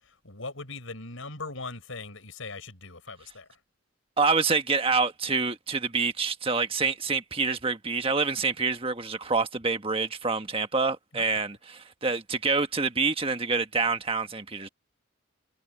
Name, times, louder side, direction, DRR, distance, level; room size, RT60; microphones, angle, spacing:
voice 1, 0.1-3.5 11.1-11.2, left 3 dB, 80° left, 5.3 m, -40 dB
voice 2, 4.2-14.7, right 4 dB, 25° right, 1.5 m, -27 dB
head